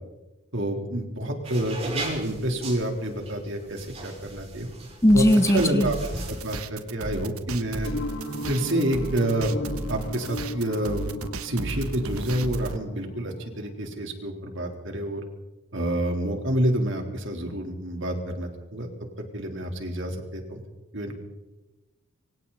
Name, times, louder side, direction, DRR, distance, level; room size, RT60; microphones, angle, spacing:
voice 1, 0.5-4.7 5.1-6.0 6.3-7.9 8.5-9.5 9.9-11.1 11.4-15.2 15.7-18.9 19.3-20.6 20.9-21.2, right 1 dB, 55° right, 2 dB, 3.7 m, -28 dB
sound 1, 1.4-6.4, right 2 dB, 30° right, 5.5 m, -38 dB
voice 2, 5.0-5.9, equal, 15° left, 11 dB, 0.7 m, -18 dB
sound 2, 5.1-12.8, right 3 dB, 85° right, 1.3 m, -35 dB
sound 3, 7.8-14.0, left 1 dB, 75° left, 2.8 m, -36 dB
27.0 x 25.0 x 4.2 m, 1.1 s
head